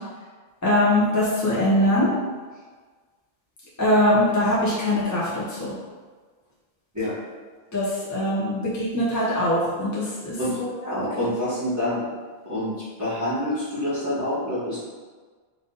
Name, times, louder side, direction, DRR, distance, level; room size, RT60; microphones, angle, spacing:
voice 1, 0.6-2.1 3.8-5.7 7.7-11.3, left 1 dB, 20° left, -8 dB, 0.7 m, -22 dB
voice 2, 10.9-12.0 12.4-12.7 13.0-14.8, left 1 dB, 15° right, -15 dB, 1.5 m, -27 dB
4.0 x 2.7 x 3.9 m, 1.5 s
omnidirectional pair, 1.0 m